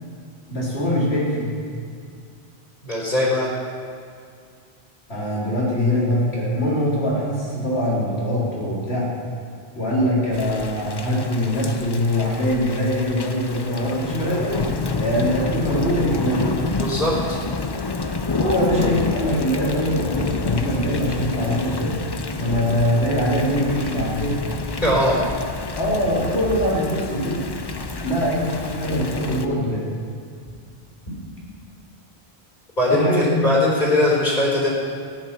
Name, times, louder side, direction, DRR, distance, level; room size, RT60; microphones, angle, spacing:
voice 1, 0.5-1.5 5.1-9.1 9.7-16.7 18.3-21.9 22.3-24.4 25.8-27.5 28.0-29.8 32.9-33.4, equal, 80° left, -6 dB, 3.8 m, -22 dB
voice 2, 2.8-3.5 15.0-15.2 16.8-17.4 24.8-25.2 32.8-34.7, left 1 dB, 45° left, -6 dB, 4.5 m, -20 dB
Thunder / Rain, 10.3-29.5, left 3 dB, 30° left, 0.5 m, -29 dB
14.5 x 10.5 x 6.0 m, 2.3 s
omnidirectional pair, 1.1 m